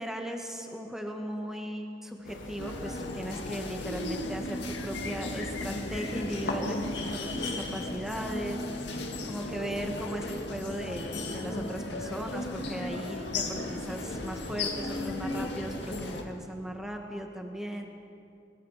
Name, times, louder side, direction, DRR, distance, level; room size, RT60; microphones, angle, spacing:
voice 1, 0.0-8.9 9.2-17.9, equal, 5° right, 2 dB, 1.7 m, -37 dB
sound 1, 2.2-8.0, left 2 dB, 75° left, 1.5 m, -43 dB
sound 2, 2.6-16.2, left 2 dB, 60° left, 2.0 m, -35 dB
sound 3, 4.7-16.1, equal, 60° right, 5.1 m, -48 dB
22.0 x 21.5 x 5.8 m, 2.7 s
head